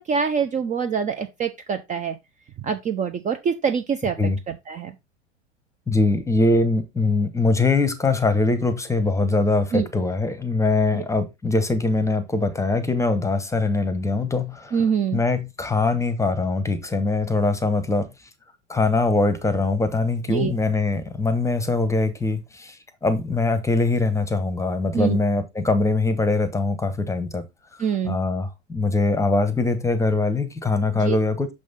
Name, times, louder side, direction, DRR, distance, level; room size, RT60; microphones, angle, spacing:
voice 1, 0.0-2.2 2.6-4.2 4.5-4.9 9.7-9.9 14.7-15.2 20.3-20.5 24.9-25.2 27.8-28.2 30.9-31.2, right 6 dB, 20° right, 0.6 m, -25 dB
voice 2, 5.9-14.8 15.1-18.1 18.7-27.4 28.0-31.5, left 3 dB, 10° left, 1.0 m, -22 dB
6.5 x 5.4 x 3.9 m
figure-of-eight pair, 90°, 37 cm